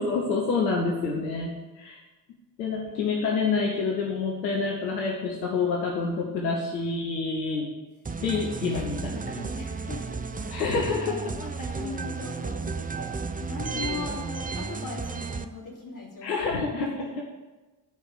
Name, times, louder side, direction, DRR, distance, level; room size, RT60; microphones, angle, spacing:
voice 1, 0.0-2.0 2.6-7.7 8.2-9.5 10.5-11.1 16.2-17.2, left 4 dB, 80° left, 0 dB, 1.1 m, -28 dB
sound 1, 8.1-15.4, right 4 dB, 15° right, 0.6 m, -33 dB
voice 2, 9.6-16.7 17.0-17.2, left 4 dB, 40° left, -1 dB, 3.1 m, -40 dB
10.0 x 4.9 x 8.1 m, 1.2 s
figure-of-eight pair, 40°, 50 cm